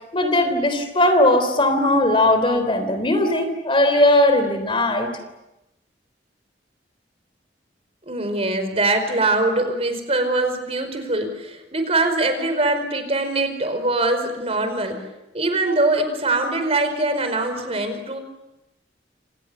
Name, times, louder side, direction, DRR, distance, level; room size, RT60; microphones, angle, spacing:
voice 1, 0.1-5.1, left 1 dB, 30° left, 8 dB, 3.5 m, -18 dB
voice 2, 8.1-15.0 15.3-18.2, right 2 dB, 35° right, 8 dB, 4.8 m, -22 dB
29.0 x 27.5 x 7.0 m, 0.94 s
head